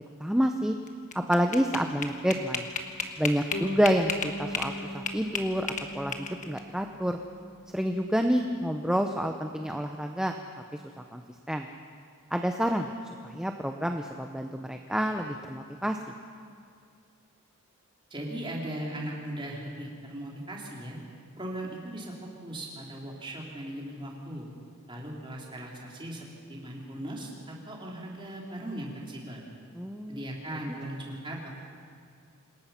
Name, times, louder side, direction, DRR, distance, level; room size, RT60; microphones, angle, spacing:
voice 1, 0.2-0.7 1.1-2.7 3.2-5.7 5.9-7.2 7.7-10.3 11.1-11.2 11.5-11.7 12.3-12.9 13.2-16.0 29.8-30.2, equal, 5° right, 4 dB, 0.7 m, -28 dB
sound 1, 0.9-4.7 5.1-6.6, left 5 dB, 35° left, 1.4 m, -33 dB
Bass guitar, 3.5-7.8, left 1 dB, 70° left, 4.2 m, -40 dB
voice 2, 18.1-21.0 21.4-22.1 22.4-24.5 24.9-29.4 30.1-31.5, right 1 dB, 20° right, -3 dB, 3.8 m, -38 dB
27.0 x 20.0 x 5.9 m, 2.3 s
head